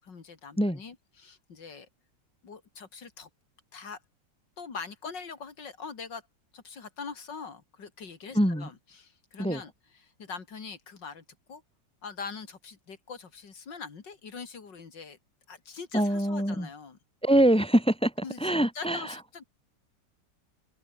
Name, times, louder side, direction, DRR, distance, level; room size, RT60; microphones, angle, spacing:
voice 1, 0.0-1.9 2.4-3.3 3.7-4.0 4.6-6.2 6.5-11.6 12.0-15.2 15.5-17.0 18.2-19.4, left 5 dB, 75° left, 3.2 m, -43 dB
voice 2, 8.3-8.7 9.4-9.6 15.9-16.7 17.2-18.1 18.4-19.0, right 1 dB, 5° left, 1.2 m, -24 dB
omnidirectional pair, 1.9 m